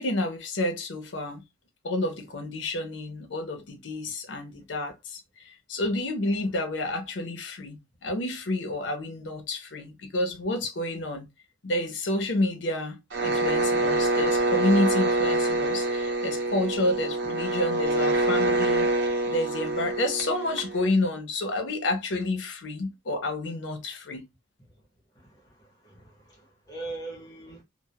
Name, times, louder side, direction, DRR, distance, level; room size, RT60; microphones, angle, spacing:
voice 1, 0.0-1.4 1.8-11.3 11.6-18.9 19.3-24.3, left 1 dB, 90° left, 0.6 m, -29 dB
sound 1, 13.1-20.9, right 2 dB, 80° right, 0.7 m, -25 dB
voice 2, 25.1-27.6, right 2 dB, 20° left, 0.8 m, -42 dB
2.2 x 2.1 x 2.7 m
head